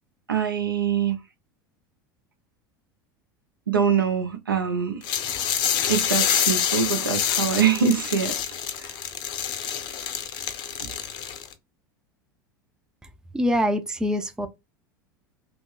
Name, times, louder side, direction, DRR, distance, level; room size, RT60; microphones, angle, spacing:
voice 1, 0.3-1.2 3.7-5.0 5.9-8.3 8.8-8.9 10.8-10.9, right 7 dB, 85° right, 0.7 m, -24 dB
sound 1, 5.0-11.5, left 9 dB, 45° left, 0.6 m, -27 dB
voice 2, 13.3-14.5, equal, 5° right, 0.4 m, -24 dB
2.8 x 2.7 x 2.3 m
figure-of-eight pair, 80°, 11 cm